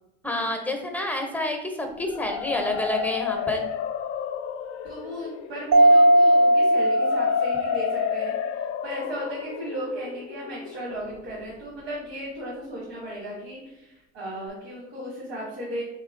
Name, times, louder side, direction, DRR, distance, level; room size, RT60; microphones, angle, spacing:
voice 1, 0.2-3.6, left 1 dB, 5° left, 3 dB, 0.6 m, -28 dB
sound 1, 1.9-11.8, left 9 dB, 50° left, 0.4 m, -32 dB
voice 2, 4.8-8.3 8.8-15.8, right 1 dB, 80° right, -6 dB, 1.3 m, -35 dB
Mallet percussion, 5.7-8.2, right 1 dB, 40° right, 0.5 m, -18 dB
3.2 x 2.9 x 2.5 m, 0.93 s
hypercardioid pair, 75°, 32 cm